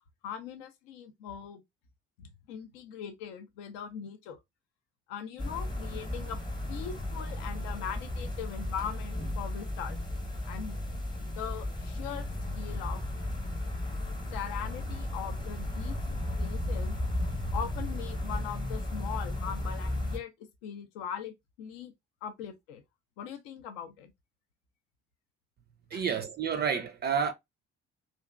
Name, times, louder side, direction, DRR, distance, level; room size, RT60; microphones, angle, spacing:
voice 1, 0.2-1.6 2.2-4.4 5.1-6.4 6.7-10.0 10.4-10.8 11.2-12.3 12.6-13.0 14.3-16.0 16.4-17.0 17.5-20.3 20.6-21.9 22.2-22.8 23.2-24.1 25.9-26.0, left 8 dB, 65° left, 0.5 m, -40 dB
sound 1, 5.4-20.2, left 1 dB, 15° left, 0.9 m, -34 dB
voice 2, 25.9-27.3, right 7 dB, 30° right, 0.4 m, -29 dB
2.7 x 2.5 x 2.3 m
figure-of-eight pair, 50°, 34 cm